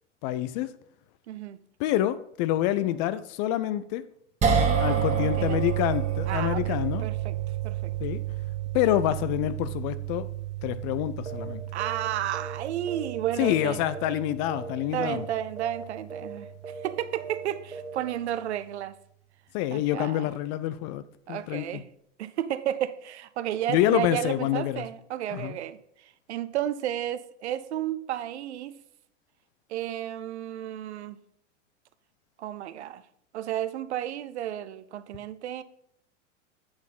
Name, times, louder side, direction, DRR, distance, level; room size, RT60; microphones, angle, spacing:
voice 1, 0.2-0.7 1.8-4.0 4.8-7.0 8.0-8.2 8.7-10.3 10.6-11.6 13.4-15.2 19.5-21.8 23.7-24.8 25.3-25.6, left 13 dB, 35° left, 0.5 m, -27 dB
voice 2, 1.3-1.6 4.9-5.6 6.3-7.4 7.6-7.9 11.7-13.8 14.9-16.5 16.8-19.0 19.7-20.3 21.3-21.9 22.2-25.8 26.3-28.8 29.7-31.2 32.4-33.0 33.3-35.6, right 11 dB, 65° right, 0.7 m, -32 dB
sound 1, 4.4-16.7, right 8 dB, 20° right, 1.6 m, -30 dB
sound 2, 11.3-11.5 11.8-12.1 12.3-13.7 14.0-14.2 14.5-14.8 15.0-15.3 15.6-15.8 16.1-16.4 16.6-16.9 17.2-17.5 17.7-18.0, right 4 dB, 85° right, 1.5 m, -39 dB
8.5 x 4.5 x 5.5 m
figure-of-eight pair, 95°, 37 cm